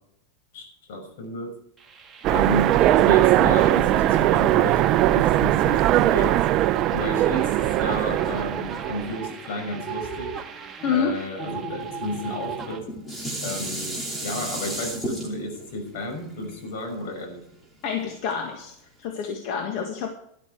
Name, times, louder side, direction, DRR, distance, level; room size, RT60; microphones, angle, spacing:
voice 1, 0.5-1.5 2.3-6.4 6.9-10.3 10.9-12.9 13.4-17.4, left 1 dB, 70° left, 4 dB, 5.9 m, -32 dB
sound 1, 1.8-12.8, right 5 dB, 15° right, 1.7 m, -35 dB
Train, 2.2-9.2, right 14 dB, 40° right, 0.6 m, -20 dB
Dishes pots and pans, 12.5-17.8 18.3-18.4, right 1 dB, 10° left, 3.0 m, -33 dB
voice 2, 17.8-18.7 19.0-20.1, left 6 dB, 55° left, 4 dB, 1.8 m, -27 dB
12.5 x 11.5 x 4.7 m, 0.71 s
supercardioid pair, 140°, 0 cm